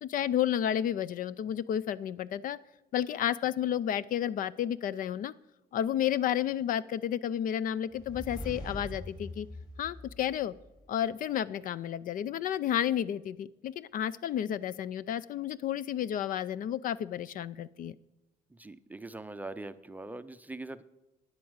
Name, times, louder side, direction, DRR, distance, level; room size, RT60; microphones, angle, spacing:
voice 1, 0.0-2.6 2.9-5.3 5.7-9.5 9.8-10.5 10.9-17.9, left 10 dB, 55° left, 19 dB, 0.4 m, -31 dB
sound 1, 7.9-10.9, left 1 dB, 25° left, 4.2 m, -43 dB
voice 2, 18.5-20.8, right 2 dB, 10° right, 12 dB, 0.5 m, -42 dB
9.5 x 8.5 x 7.9 m, 0.97 s
cardioid pair, 110°, 17 cm